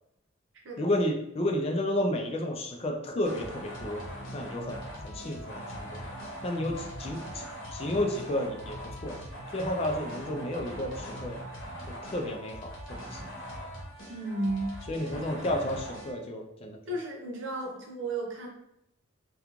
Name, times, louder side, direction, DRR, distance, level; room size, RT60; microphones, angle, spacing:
voice 1, 0.8-4.0 4.3-6.1 6.4-7.4 7.7-9.2 9.5-11.4 12.0-12.8 13.1-13.3 14.9-16.8, left 1 dB, 30° left, 2 dB, 0.4 m, -31 dB
sound 1, 3.2-16.1, equal, 90° left, 0.8 m, -41 dB
voice 2, 14.1-14.7 15.0-15.6 16.9-18.5, right 2 dB, 70° right, 0 dB, 0.6 m, -34 dB
3.0 x 2.3 x 2.4 m, 0.79 s
head